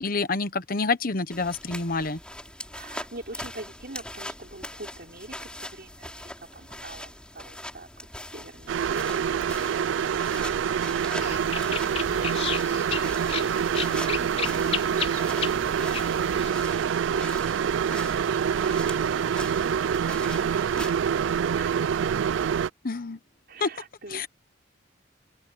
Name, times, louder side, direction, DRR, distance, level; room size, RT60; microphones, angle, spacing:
voice 1, 0.0-2.2 22.8-23.2 23.6-23.7 24.1-24.3, left 3 dB, 50° left, 1.1 m, -27 dB
sound 1, 1.3-20.9, left 1 dB, 5° left, 4.3 m, -42 dB
voice 2, 2.7-7.9 8.3-13.4 23.5-24.3, right 2 dB, 55° right, 4.7 m, -45 dB
sound 2, 8.7-22.7, right 7 dB, 80° right, 0.3 m, -26 dB
sound 3, 11.2-16.5, left 6 dB, 35° left, 4.7 m, -34 dB
open air
head